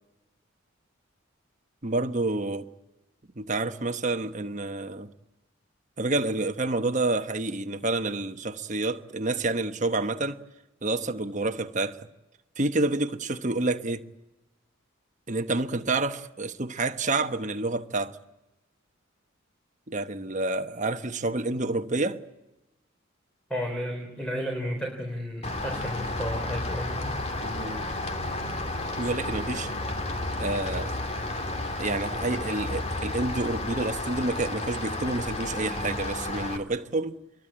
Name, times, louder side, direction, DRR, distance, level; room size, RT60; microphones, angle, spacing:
voice 1, 1.8-2.7 3.4-5.1 6.0-10.4 10.8-12.1 12.6-14.1 15.3-18.2 19.9-22.2 27.4-27.9 29.0-29.7 30.4-30.9 31.8-37.2, right 2 dB, 35° right, 1.2 m, -29 dB
voice 2, 23.5-27.2, equal, 5° left, 3.8 m, -33 dB
Rain, 25.4-36.6, left 2 dB, 30° left, 2.3 m, -32 dB
26.5 x 22.0 x 8.7 m
head